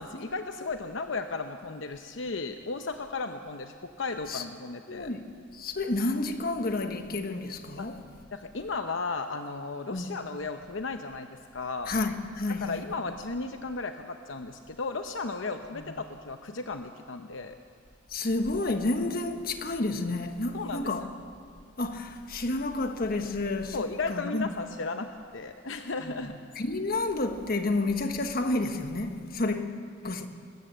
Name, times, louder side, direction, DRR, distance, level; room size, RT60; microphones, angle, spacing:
voice 1, 0.0-5.1 7.8-7.9 8.3-11.9 12.5-17.6 20.5-20.9 23.7-26.3, left 3 dB, 75° left, 0.8 m, -35 dB
voice 2, 4.9-5.3 5.5-8.0 9.9-10.1 11.9-12.8 15.7-15.9 18.1-21.1 21.8-23.8 24.1-24.5 26.0-26.1 26.5-29.7 30.0-30.3, left 2 dB, 50° left, 1.3 m, -30 dB
25.5 x 13.5 x 7.6 m
head